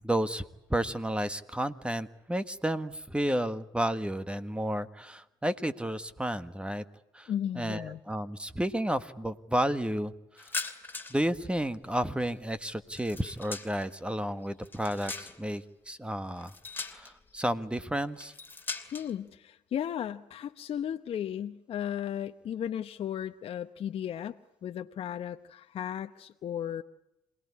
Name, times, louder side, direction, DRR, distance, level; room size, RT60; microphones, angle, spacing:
voice 1, 0.0-6.8 7.1-10.1 10.4-10.5 11.1-16.5 16.9-18.3, right 1 dB, 10° right, 12 dB, 1.5 m, -32 dB
voice 2, 7.3-8.0 18.9-26.8, left 9 dB, 55° left, 7 dB, 1.0 m, -35 dB
sound 1, 10.4-11.3 11.6-14.0 14.4-15.6 16.4-17.3 18.2-19.1, left 3 dB, 20° left, 2.8 m, -40 dB
27.0 x 18.5 x 9.8 m, 0.89 s
supercardioid pair, 65°, 12 cm